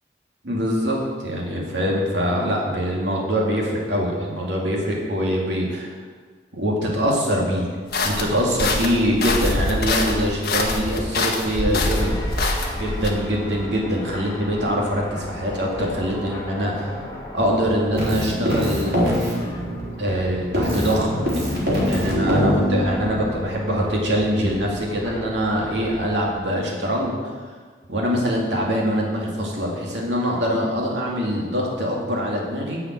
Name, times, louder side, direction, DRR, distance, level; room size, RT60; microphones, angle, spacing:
voice 1, 0.4-6.0 6.5-7.7 8.0-12.2 12.7-16.9 17.3-19.2 20.0-21.1 21.9-27.3 27.9-32.8, equal, 80° right, -2 dB, 2.4 m, -23 dB
sound 1, 7.9-13.1, left 2 dB, 55° left, 1.5 m, -24 dB
sound 2, 11.7-26.2, equal, 20° left, 1.7 m, -36 dB
Keyboard (musical), 17.9-20.2 20.5-23.3, equal, 65° right, 3.7 m, -23 dB
10.0 x 5.7 x 8.6 m, 1.5 s
head